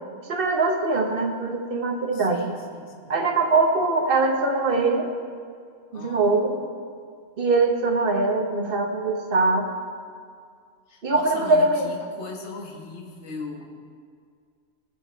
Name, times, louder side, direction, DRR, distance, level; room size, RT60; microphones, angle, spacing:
voice 1, 0.3-2.5 3.1-5.1 5.9-6.5 7.4-9.7 11.0-11.9, right 3 dB, 50° right, 3 dB, 1.2 m, -22 dB
voice 2, 2.1-3.1 5.9-6.7 10.9-13.6, left 4 dB, 65° left, 0 dB, 1.6 m, -39 dB
19.0 x 6.6 x 4.5 m, 2.1 s
omnidirectional pair, 1.3 m